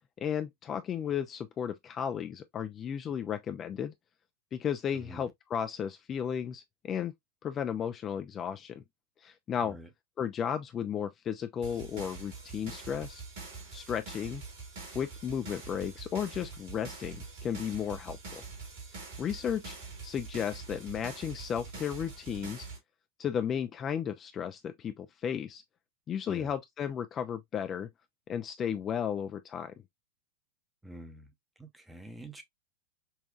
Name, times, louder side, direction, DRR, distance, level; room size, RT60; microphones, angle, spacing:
voice 1, 0.2-3.9 4.5-7.1 7.4-8.8 9.2-9.8 10.2-13.2 13.7-14.4 14.9-18.4 18.9-19.8 20.0-22.7 23.2-25.6 26.1-27.9 28.3-29.7, left 8 dB, 25° left, 0.4 m, -34 dB
voice 2, 4.9-5.3 9.6-9.9 26.3-26.5 30.8-31.3 31.6-32.4, right 1 dB, 5° right, 0.8 m, -47 dB
sound 1, 11.6-22.8, right 4 dB, 50° right, 1.8 m, -44 dB
5.6 x 2.3 x 2.3 m
figure-of-eight pair, 90°, 0 cm